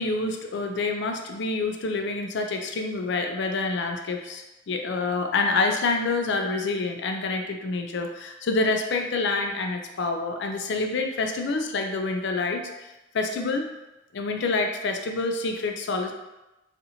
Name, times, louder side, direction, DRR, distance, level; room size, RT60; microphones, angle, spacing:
voice 1, 0.0-12.9 13.1-13.7 14.1-16.1, left 3 dB, 65° left, 4 dB, 0.4 m, -27 dB
2.7 x 2.5 x 4.2 m, 1.0 s
head